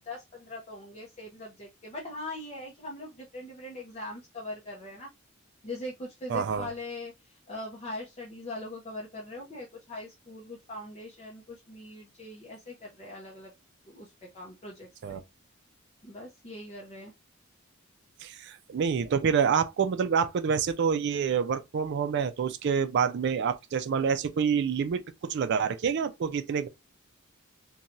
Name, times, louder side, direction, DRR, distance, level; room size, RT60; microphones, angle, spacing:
voice 1, 0.0-5.1 5.6-13.5 13.9-15.2 16.0-17.1, left 2 dB, 30° left, 0.6 m, -41 dB
voice 2, 6.3-6.7 15.0-15.2 18.2-26.7, right 6 dB, 55° right, 0.3 m, -27 dB
2.6 x 2.2 x 2.8 m
head